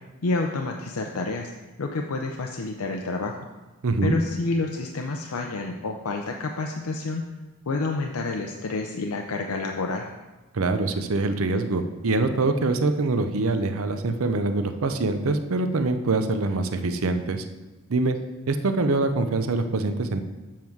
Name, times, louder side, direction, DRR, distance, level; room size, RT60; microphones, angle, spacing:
voice 1, 0.2-1.5 1.8-3.5 4.0-7.2 7.7-10.1, left 3 dB, 80° left, 2 dB, 0.6 m, -29 dB
voice 2, 3.8-4.2 10.5-17.4 17.9-18.2 18.5-20.2, right 3 dB, 75° right, 9 dB, 0.6 m, -24 dB
7.4 x 7.1 x 4.6 m, 1.1 s
head